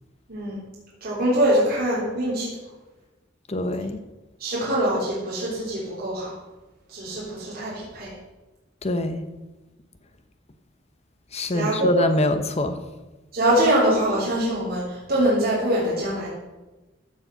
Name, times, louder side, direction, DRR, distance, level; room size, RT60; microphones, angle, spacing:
voice 1, 1.0-2.5 4.4-6.3 6.9-8.1 11.5-12.0 13.3-16.3, right 1 dB, 50° right, -7 dB, 3.8 m, -23 dB
voice 2, 3.5-4.0 8.8-9.3 11.3-12.8, left 1 dB, 35° left, 9 dB, 1.0 m, -24 dB
15.0 x 6.6 x 5.9 m, 1.1 s
head